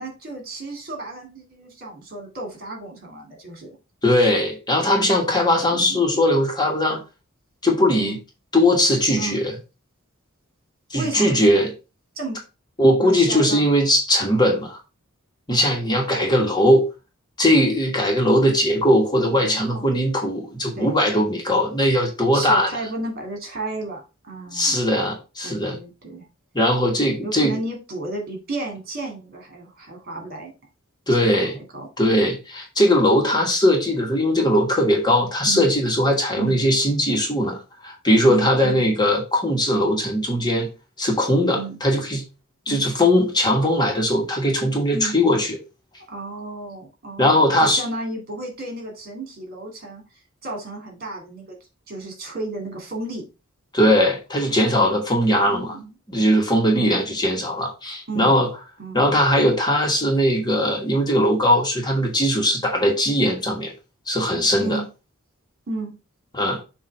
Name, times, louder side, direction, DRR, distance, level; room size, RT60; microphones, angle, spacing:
voice 1, 0.0-3.7 5.7-6.0 7.9-8.2 9.2-9.4 10.9-11.4 12.2-12.4 13.0-13.7 19.2-20.0 20.7-21.0 22.3-24.8 25.4-26.3 27.2-30.5 31.2-31.9 35.4-35.7 36.4-36.6 38.3-38.9 41.5-41.8 42.7-42.9 44.9-45.2 46.1-50.0 50.4-51.6 51.9-53.3 53.8-54.0 55.3-56.0 56.7-57.0 58.1-58.4 58.8-59.0 64.6-64.9 65.7-65.9, right 2 dB, 45° right, 2 dB, 2.5 m, -33 dB
voice 2, 4.0-7.0 7.6-8.2 8.5-9.5 10.9-11.7 12.8-14.8 15.5-16.9 17.4-22.7 24.5-25.8 26.5-27.5 31.1-31.6 32.0-40.7 41.0-42.2 42.7-45.6 47.2-47.8 53.7-55.8 56.1-58.5 58.9-63.7 64.1-64.8 66.3-66.6, left 1 dB, 20° left, 1 dB, 1.5 m, -19 dB
7.2 x 2.8 x 5.3 m, 0.29 s
head